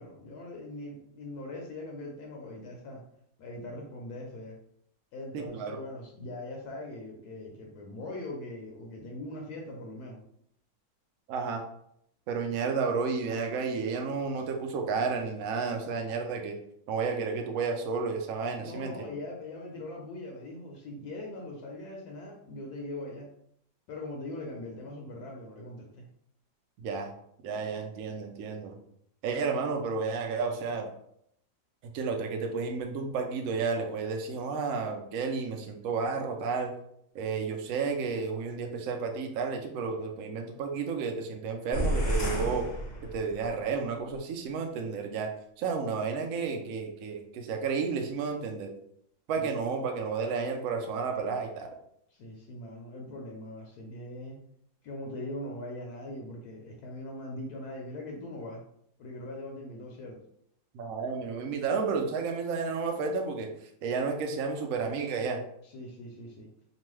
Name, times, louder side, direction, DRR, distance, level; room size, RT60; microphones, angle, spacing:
voice 1, 0.0-3.0 3.4-4.6 5.1-10.2 18.6-23.3 23.9-26.0 49.4-49.5 52.1-54.4 54.8-58.6 59.0-60.2 65.6-66.5, left 1 dB, 75° left, 0 dB, 1.1 m, -41 dB
voice 2, 5.3-5.8 11.3-11.6 12.3-16.6 16.9-18.9 26.8-27.1 27.4-28.8 29.2-30.9 31.8-36.7 37.1-42.6 43.0-45.3 45.6-48.7 49.3-51.7 60.7-63.5 63.8-65.4, right 5 dB, 70° right, 3 dB, 0.8 m, -32 dB
sound 1, 41.7-43.6, equal, 55° left, 0.7 m, -30 dB
2.9 x 2.2 x 3.1 m, 0.72 s
omnidirectional pair, 1.7 m